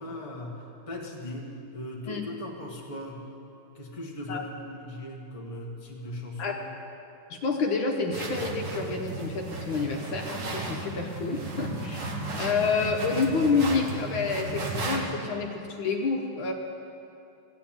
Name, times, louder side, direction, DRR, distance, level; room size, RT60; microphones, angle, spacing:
voice 1, 0.0-3.3 3.7-6.6, left 1 dB, 15° left, -2 dB, 1.7 m, -39 dB
voice 2, 7.3-16.5, left 4 dB, 70° left, 1 dB, 1.7 m, -28 dB
sound 1, 8.1-15.0, right 2 dB, 40° right, 1.5 m, -34 dB
14.5 x 8.3 x 8.9 m, 2.7 s
omnidirectional pair, 2.3 m